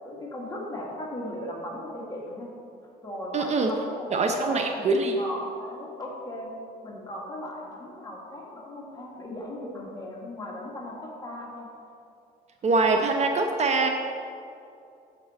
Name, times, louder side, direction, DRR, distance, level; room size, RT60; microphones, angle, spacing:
voice 1, 0.0-2.5 3.0-4.2 4.5-6.5 6.8-11.7, left 1 dB, 20° left, -3 dB, 1.9 m, -37 dB
voice 2, 3.3-3.7 4.1-5.2 12.6-13.9, right 3 dB, 40° right, 4 dB, 0.6 m, -23 dB
8.5 x 6.1 x 4.2 m, 2.6 s
cardioid pair, 110°, 17 cm